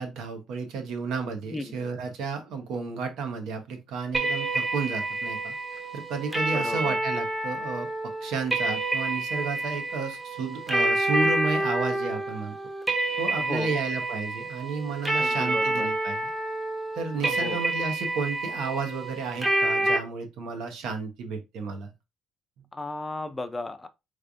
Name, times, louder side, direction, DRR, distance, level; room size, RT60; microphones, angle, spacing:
voice 1, 0.0-7.9 8.2-12.5 13.2-16.3 16.9-21.9, right 4 dB, 75° right, 0.9 m, -32 dB
sound 1, 4.1-20.0, right 1 dB, 15° right, 0.7 m, -28 dB
voice 2, 6.5-7.0 13.4-13.8 15.2-15.9 17.2-17.6 22.7-23.9, left 2 dB, 15° left, 0.4 m, -35 dB
3.5 x 3.2 x 2.5 m
cardioid pair, 135°, 0 cm